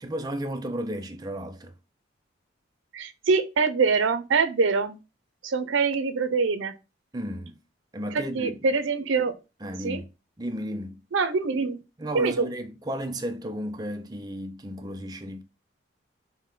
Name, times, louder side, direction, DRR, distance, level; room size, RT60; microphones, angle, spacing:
voice 1, 0.0-1.7 7.1-7.6 7.9-8.6 9.6-10.1 10.4-11.0 12.0-15.4, equal, 20° right, 0.5 m, -33 dB
voice 2, 2.9-5.0 5.4-6.8 8.1-9.3 9.8-10.0 11.1-11.8 12.1-12.5, right 4 dB, 80° right, 0.5 m, -24 dB
4.7 x 2.1 x 3.7 m
head